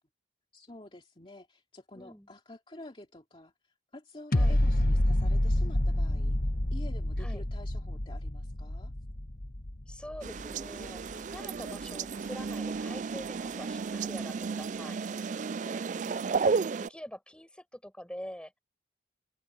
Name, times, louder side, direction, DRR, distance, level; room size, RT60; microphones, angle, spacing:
voice 1, 0.5-6.4 6.7-8.9 15.0-15.1 15.6-15.9, left 1 dB, 30° left, 2.6 m, -49 dB
voice 2, 1.9-2.3 4.3-4.6 7.2-7.4 9.9-15.0 16.0-16.4 16.8-18.6, equal, 5° left, 6.8 m, -45 dB
sound 1, 4.3-11.4 11.8-11.9, left 1 dB, 50° left, 1.4 m, -28 dB
sound 2, 10.2-16.9, right 5 dB, 45° right, 0.4 m, -33 dB
open air
head